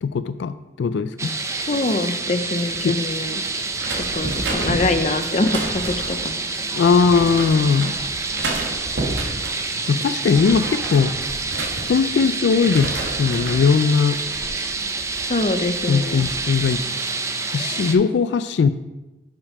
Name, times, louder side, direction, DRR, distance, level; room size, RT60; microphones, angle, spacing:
voice 1, 0.0-1.3 2.8-3.0 6.7-7.9 9.9-11.1 11.9-14.2 15.9-16.8 17.4-18.7, left 5 dB, 80° left, 12 dB, 0.3 m, -19 dB
sound 1, 1.2-17.9, right 3 dB, 15° right, 0.5 m, -28 dB
voice 2, 1.7-3.4 4.0-6.4 15.2-16.2, left 2 dB, 40° left, 8 dB, 0.6 m, -24 dB
sound 2, 3.8-6.3 7.0-7.9 8.3-9.6 10.1-12.3 12.6-13.7 14.1-14.5, right 2 dB, 80° right, 1.5 m, -30 dB
7.2 x 5.3 x 5.3 m, 1.0 s
head